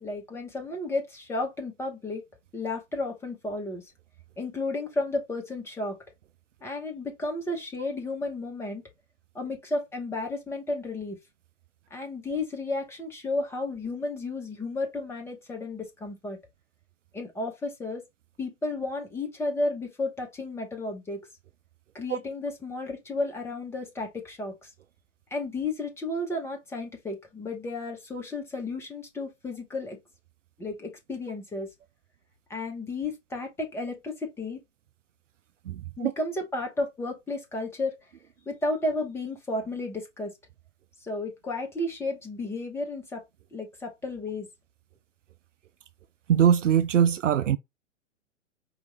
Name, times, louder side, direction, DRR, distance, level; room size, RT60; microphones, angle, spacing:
voice 1, 0.0-2.2 2.5-3.9 4.4-6.0 6.6-8.8 9.3-11.2 11.9-16.4 17.1-18.0 18.4-21.3 21.9-24.7 25.3-30.0 30.6-31.7 32.5-34.6 36.0-38.0 38.5-40.3 41.0-43.2 43.5-44.5, left 2 dB, 5° left, 1.0 m, -33 dB
voice 2, 35.7-36.1 46.3-47.6, right 9 dB, 75° right, 0.5 m, -22 dB
4.8 x 3.1 x 3.2 m
figure-of-eight pair, 115°, 38 cm